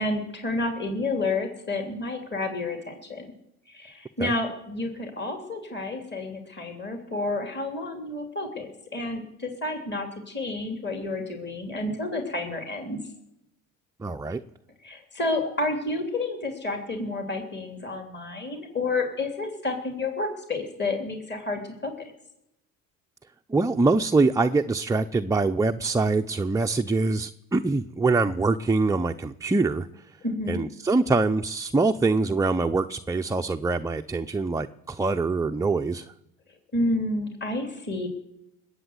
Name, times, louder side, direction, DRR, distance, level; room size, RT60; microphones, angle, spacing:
voice 1, 0.0-3.3 3.7-13.0 14.8-21.9 30.2-30.6 36.7-38.1, left 2 dB, 25° left, 4 dB, 3.1 m, -30 dB
voice 2, 14.0-14.4 23.5-29.9 30.5-36.1, right 3 dB, 10° right, 5 dB, 0.5 m, -24 dB
20.5 x 8.1 x 7.9 m, 0.84 s
hypercardioid pair, 65°, 39 cm